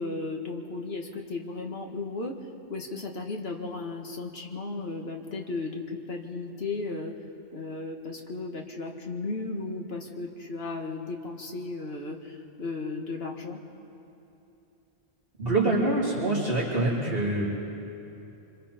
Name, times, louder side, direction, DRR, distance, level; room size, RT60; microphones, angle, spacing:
voice 1, 0.0-2.4 2.7-7.1 7.5-13.6, left 3 dB, 75° left, 1 dB, 2.0 m, -35 dB
voice 2, 15.4-17.4, right 2 dB, 60° right, -7 dB, 3.6 m, -25 dB
30.0 x 25.0 x 4.3 m, 2.9 s
omnidirectional pair, 1.1 m